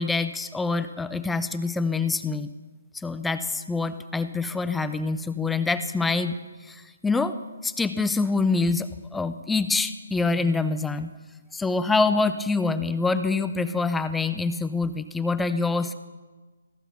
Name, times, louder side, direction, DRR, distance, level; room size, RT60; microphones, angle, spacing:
voice 1, 0.0-2.5 2.9-6.3 6.7-7.3 7.6-11.1 11.5-15.9, left 3 dB, 5° left, 11 dB, 0.3 m, -25 dB
14.5 x 5.5 x 5.9 m, 1.3 s
hypercardioid pair, 155°, 0 cm